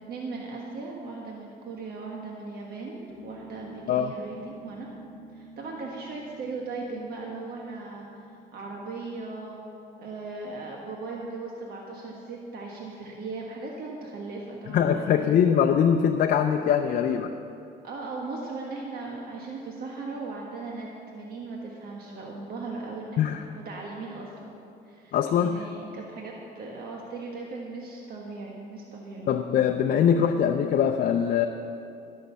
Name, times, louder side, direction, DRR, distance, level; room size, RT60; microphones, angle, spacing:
voice 1, 0.0-4.9 5.3-9.6 10.0-15.5 17.8-20.9 21.1-24.6 24.8-29.3, right 3 dB, 65° right, -1 dB, 1.5 m, -38 dB
sound 1, 3.1-10.0, right 1 dB, 10° left, 2.0 m, -50 dB
voice 2, 14.7-17.3 23.2-23.4 25.1-25.6 29.3-31.5, left 8 dB, 55° left, 4 dB, 0.6 m, -22 dB
15.5 x 6.6 x 7.0 m, 2.6 s
cardioid pair, 110°, 17 cm